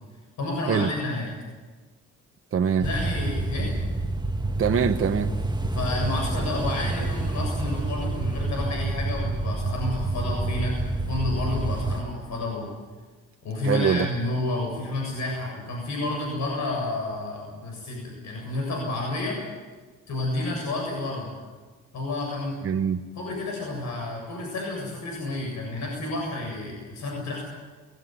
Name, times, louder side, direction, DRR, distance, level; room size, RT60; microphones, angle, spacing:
voice 1, 0.4-1.3 2.8-3.7 5.7-10.7 11.1-12.7 13.4-19.4 20.1-21.3 21.9-22.6 23.1-27.4, left 2 dB, 70° left, 7.5 m, -30 dB
voice 2, 2.5-2.9 4.6-5.3 13.6-14.1 22.6-23.0, right 7 dB, 45° right, 1.2 m, -23 dB
sound 1, 2.8-12.0, right 2 dB, 15° right, 1.9 m, -28 dB
21.5 x 18.0 x 9.6 m
cardioid pair, 90°, 30 cm